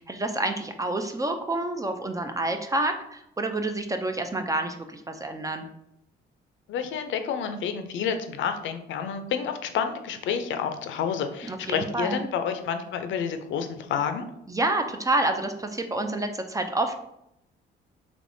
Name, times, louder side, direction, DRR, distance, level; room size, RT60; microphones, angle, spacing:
voice 1, 0.0-5.7 11.5-12.2 14.5-17.0, right 2 dB, 15° right, 6 dB, 0.3 m, -28 dB
voice 2, 6.7-14.2, left 7 dB, 75° left, 7 dB, 0.5 m, -29 dB
3.4 x 3.0 x 2.6 m, 0.79 s
cardioid pair, 90°, 20 cm